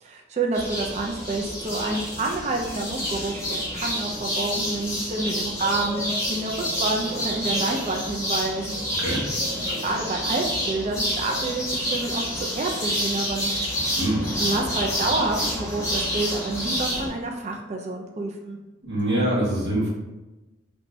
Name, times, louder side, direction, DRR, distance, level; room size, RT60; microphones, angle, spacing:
voice 1, 0.0-6.5 6.8-8.8 9.5-13.5 14.4-18.6, right 2 dB, 35° right, 1 dB, 0.3 m, -28 dB
sound 1, 0.5-17.1, equal, 15° left, 1.1 m, -28 dB
voice 2, 13.9-14.3 18.8-19.9, right 1 dB, 60° right, -6 dB, 1.2 m, -24 dB
3.4 x 3.0 x 2.6 m, 1.1 s
head